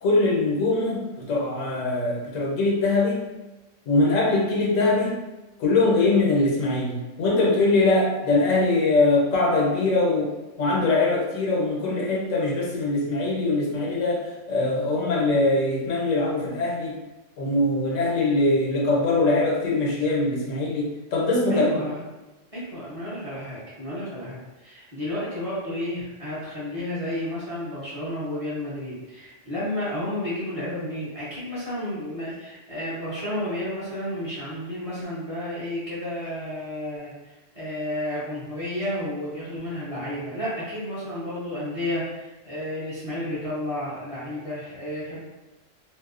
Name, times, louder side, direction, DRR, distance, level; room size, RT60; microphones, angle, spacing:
voice 1, 0.0-3.2 3.9-5.2 5.6-17.0 17.4-21.8, left 2 dB, 90° left, -4 dB, 1.1 m, -22 dB
voice 2, 21.5-22.0 22.5-45.2, left 1 dB, 35° right, -10 dB, 0.7 m, -32 dB
2.7 x 2.0 x 2.4 m, 1.1 s
omnidirectional pair, 1.3 m